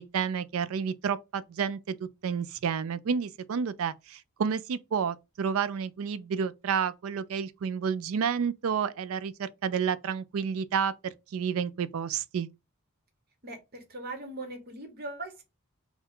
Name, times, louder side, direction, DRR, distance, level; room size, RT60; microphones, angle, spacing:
voice 1, 0.0-1.9 2.2-12.5, right 6 dB, 65° right, 0.4 m, -30 dB
voice 2, 13.4-15.4, right 2 dB, 45° right, 1.1 m, -40 dB
4.3 x 2.3 x 3.6 m
head